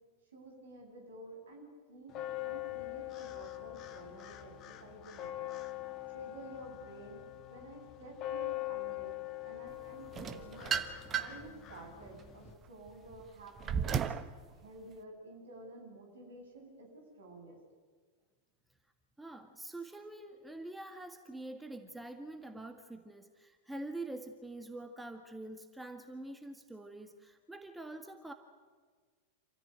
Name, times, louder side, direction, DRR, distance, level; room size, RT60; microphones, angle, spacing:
voice 1, 0.3-5.6 6.1-7.2 7.5-10.8 11.2-14.0 14.5-17.6, right 2 dB, 65° right, 1 dB, 7.4 m, -51 dB
sound 1, 2.1-12.5, left 16 dB, 35° left, 1.6 m, -43 dB
sound 2, 10.1-11.5 12.0-14.3, right 7 dB, 25° right, 1.3 m, -35 dB
voice 2, 19.2-28.3, right 2 dB, 5° right, 6 dB, 1.6 m, -45 dB
27.5 x 15.0 x 9.3 m, 1.5 s
figure-of-eight pair, 90°, 0 cm